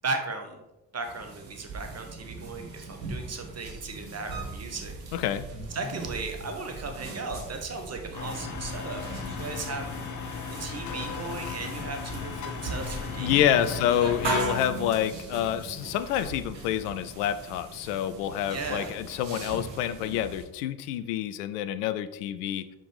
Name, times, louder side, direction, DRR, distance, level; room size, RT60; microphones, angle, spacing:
voice 1, 0.0-0.6 0.9-4.9 5.7-9.9 10.6-13.5 14.0-14.1 14.5-14.6 18.5-18.9, right 3 dB, 30° right, 4 dB, 1.2 m, -36 dB
sound 1, 1.0-20.4, right 3 dB, 85° right, 1.0 m, -39 dB
voice 2, 5.1-5.5 13.2-22.7, left 10 dB, 70° left, 12 dB, 0.6 m, -28 dB
sound 2, 8.1-14.4, left 5 dB, 35° left, 1.0 m, -36 dB
5.7 x 5.2 x 4.8 m, 0.96 s
figure-of-eight pair, 45°, 50 cm